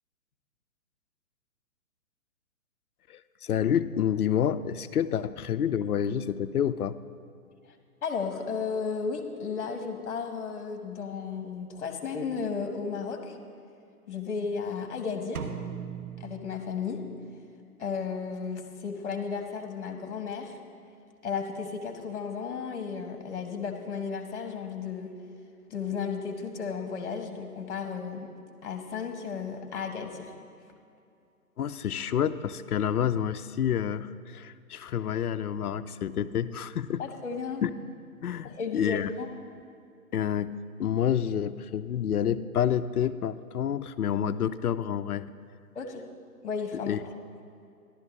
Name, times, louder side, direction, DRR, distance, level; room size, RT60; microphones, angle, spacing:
voice 1, 3.1-7.0 31.6-37.0 37.6-37.7 38.2-39.1 40.1-40.5 40.8-45.2 46.9-47.0, left 9 dB, 70° left, 13 dB, 0.5 m, -28 dB
voice 2, 8.0-13.4 14.1-15.5 16.2-17.0 17.8-20.6 21.2-25.1 25.7-28.3 28.6-30.3 37.0-37.6 38.4-39.3 45.7-46.0 46.4-47.1, left 5 dB, 50° left, 5 dB, 1.4 m, -34 dB
sound 1, 15.4-17.3, right 7 dB, 70° right, 1.0 m, -39 dB
13.5 x 11.5 x 3.1 m, 2.5 s
figure-of-eight pair, 130°, 46 cm